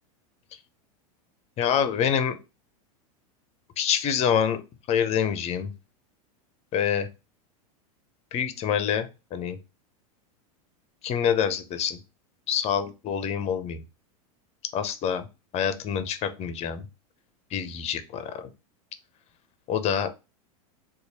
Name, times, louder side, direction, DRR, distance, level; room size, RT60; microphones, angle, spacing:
voice 1, 1.6-2.4 3.8-4.6 4.9-5.7 6.7-7.1 8.3-9.6 11.0-12.0 12.5-13.8 14.7-15.3 15.5-16.9 17.5-18.4 19.7-20.1, left 8 dB, 35° left, 11 dB, 0.6 m, -26 dB
3.0 x 2.4 x 3.9 m, 0.28 s
hypercardioid pair, 105°, 19 cm